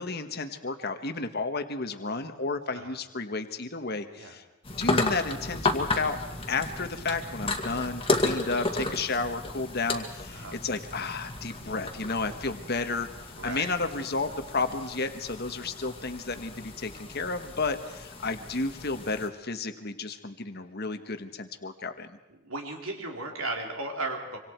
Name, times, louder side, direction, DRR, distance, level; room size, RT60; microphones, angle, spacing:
voice 1, 0.0-4.4 4.8-6.2 6.5-13.1 13.4-22.1, left 3 dB, 45° left, 8 dB, 1.4 m, -32 dB
sound 1, 4.6-19.3, left 2 dB, 25° left, 2.0 m, -33 dB
voice 2, 13.3-13.7 22.4-24.4, right 2 dB, 75° right, 1 dB, 3.7 m, -35 dB
25.5 x 25.5 x 4.6 m, 1.1 s
head